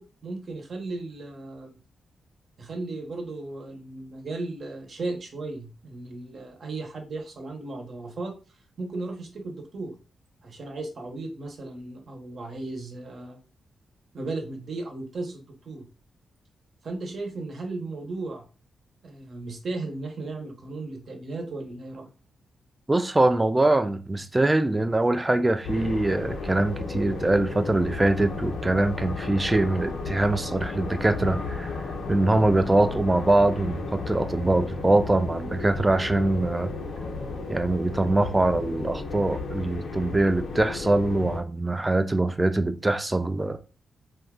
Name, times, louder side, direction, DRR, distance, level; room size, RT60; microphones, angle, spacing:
voice 1, 0.0-1.8 2.6-8.4 8.8-9.9 10.4-13.4 14.1-15.9 16.8-18.4 19.0-22.1, right 2 dB, 55° right, 0.9 m, -35 dB
voice 2, 22.9-31.7 32.1-36.7 37.5-43.6, right 2 dB, 20° right, 0.3 m, -23 dB
sound 1, 25.6-41.4, left 3 dB, 75° left, 0.7 m, -34 dB
2.6 x 2.4 x 3.6 m
cardioid pair, 90°, 0 cm